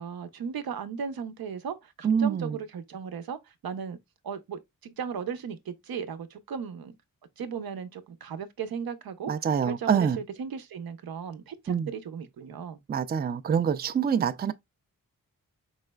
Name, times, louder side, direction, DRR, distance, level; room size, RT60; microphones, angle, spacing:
voice 1, 0.0-4.0 4.2-7.0 7.4-12.8, right 6 dB, 90° right, 0.7 m, -36 dB
voice 2, 2.0-2.5 9.3-10.2 11.7-11.9 12.9-14.5, right 7 dB, 30° right, 0.3 m, -25 dB
4.8 x 3.2 x 2.2 m
wide cardioid pair, 125°, 35 cm